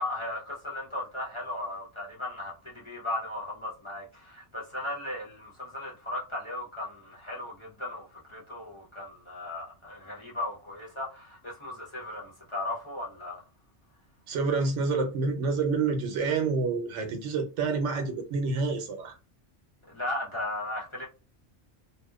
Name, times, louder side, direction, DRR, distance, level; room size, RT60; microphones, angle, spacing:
voice 1, 0.0-13.4 19.9-21.1, left 2 dB, 30° left, 0.7 m, -36 dB
voice 2, 14.3-19.2, right 4 dB, 85° right, 1.0 m, -28 dB
2.8 x 2.0 x 2.3 m
omnidirectional pair, 1.2 m